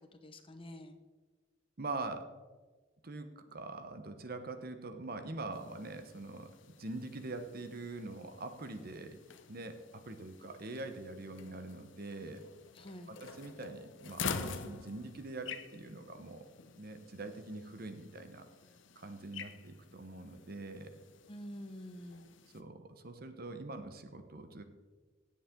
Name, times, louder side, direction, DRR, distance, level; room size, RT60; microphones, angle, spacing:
voice 1, 0.1-1.0 12.7-13.1 21.3-22.3, equal, 25° left, 7 dB, 0.9 m, -47 dB
voice 2, 1.8-2.3 3.0-9.2 9.5-12.4 13.1-16.4 16.8-18.5 19.0-20.9 22.5-24.6, right 2 dB, 50° right, 8 dB, 0.9 m, -44 dB
sound 1, 5.5-22.6, left 5 dB, 70° left, 0.8 m, -47 dB
17.0 x 8.5 x 3.7 m, 1.3 s
head